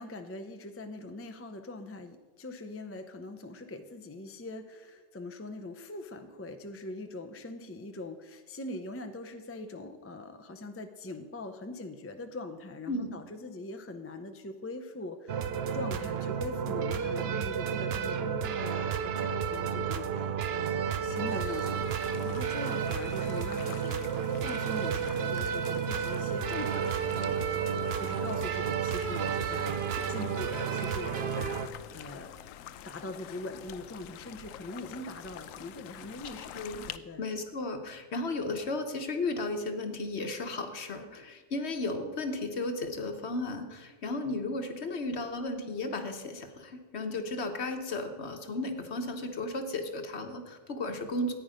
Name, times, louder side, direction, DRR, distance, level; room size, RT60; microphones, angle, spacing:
voice 1, 0.0-24.0 24.4-29.7 30.1-32.4 32.8-37.2, left 2 dB, 15° left, 7 dB, 0.5 m, -42 dB
sound 1, 15.3-31.7, right 7 dB, 60° right, 0.8 m, -31 dB
sound 2, 21.3-37.0, left 11 dB, 85° left, 1.0 m, -47 dB
voice 2, 36.5-36.8 37.2-51.3, left 2 dB, 55° left, 6 dB, 1.3 m, -34 dB
14.5 x 9.3 x 5.0 m, 1.4 s
omnidirectional pair, 1.3 m